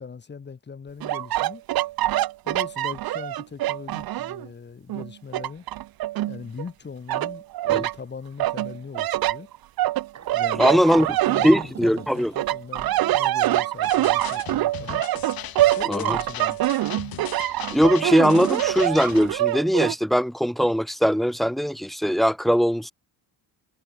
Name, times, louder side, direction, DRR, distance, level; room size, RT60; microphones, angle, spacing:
voice 1, 0.0-1.6 2.4-5.7 6.3-9.5 10.3-15.1 15.8-16.6, left 5 dB, 25° left, 7.0 m, -39 dB
sound 1, 1.0-4.5 4.9-6.7 7.1-7.9 8.4-12.0 12.3-19.9, right 15 dB, 65° right, 1.1 m, -25 dB
sound 2, 10.1-15.3, right 9 dB, 40° right, 3.9 m, -44 dB
voice 2, 10.6-11.1 11.4-12.3 15.9-16.2 17.7-22.9, equal, ahead, 1.4 m, -20 dB
sound 3, 13.8-19.3, left 12 dB, 60° left, 3.7 m, -38 dB
cardioid pair, 165°, 39 cm